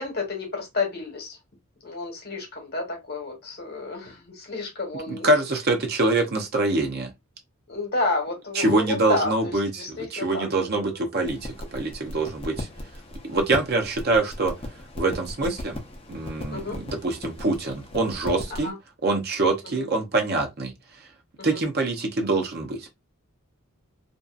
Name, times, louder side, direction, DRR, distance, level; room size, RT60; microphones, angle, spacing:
voice 1, 0.0-1.4 1.8-5.3 7.7-10.5 10.7-11.1 16.5-16.8 18.5-18.7 19.7-19.8 21.4-21.6, left 3 dB, 45° left, 1.0 m, -30 dB
voice 2, 5.1-7.1 8.5-12.7 13.3-14.5 15.0-15.8 16.1-18.7 19.0-20.7 21.4-22.9, right 2 dB, 45° right, 0.6 m, -25 dB
sound 1, 11.2-18.7, left 1 dB, 25° left, 0.5 m, -38 dB
2.6 x 2.4 x 2.3 m
head